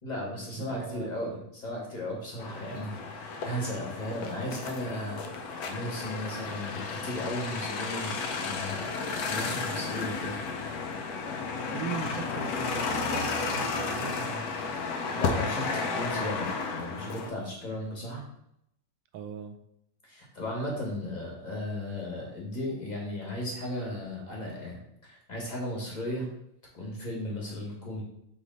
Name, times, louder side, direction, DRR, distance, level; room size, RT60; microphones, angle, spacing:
voice 1, 0.0-8.9 9.2-10.4 15.1-18.2 20.0-26.3 26.7-28.0, left 1 dB, 30° left, -3 dB, 1.1 m, -36 dB
voice 2, 0.6-1.2 11.7-14.5 19.1-19.6, right 7 dB, 85° right, 6 dB, 1.3 m, -39 dB
sound 1, 2.4-17.3, left 4 dB, 70° left, 1.0 m, -33 dB
4.3 x 3.1 x 4.0 m, 0.76 s
omnidirectional pair, 2.0 m